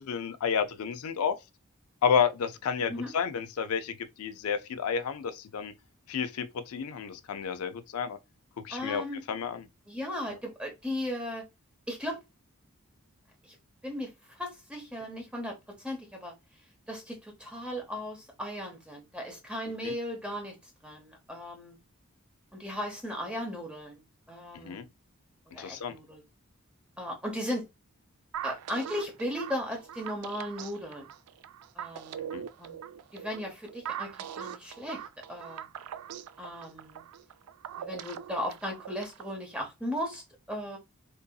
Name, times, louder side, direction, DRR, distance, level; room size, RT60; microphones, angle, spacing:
voice 1, 0.0-1.3 2.0-5.7 6.1-8.2 8.6-9.0 9.3-9.6 19.8-19.9 24.5-24.8 25.6-25.9 32.3-32.4, left 7 dB, 80° left, 0.4 m, -30 dB
voice 2, 8.7-9.2 9.9-11.5 11.9-12.2 13.4-13.6 13.8-16.3 16.9-20.6 20.8-21.8 22.5-24.0 24.3-24.9 25.5-26.2 27.0-27.6 28.4-31.1 31.7-32.8 33.1-35.0 35.3-35.7 36.4-37.0 37.8-40.8, left 1 dB, 5° right, 0.7 m, -36 dB
sound 1, 28.3-39.4, right 9 dB, 90° right, 0.3 m, -41 dB
3.7 x 2.7 x 2.2 m
head